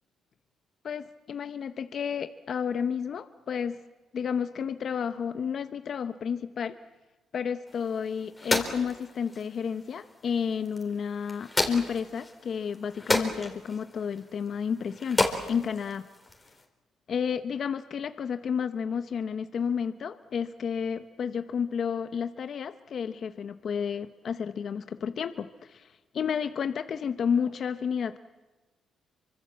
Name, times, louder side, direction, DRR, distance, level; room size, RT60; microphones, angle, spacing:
voice 1, 0.8-3.8 4.1-6.7 7.3-15.2 15.5-16.1 17.1-28.2, left 7 dB, 55° left, 9 dB, 0.8 m, -31 dB
sound 1, 7.7-16.7, left 2 dB, 15° left, 4.0 m, -33 dB
27.5 x 25.0 x 7.4 m, 1.2 s
cardioid pair, 90°, 0 cm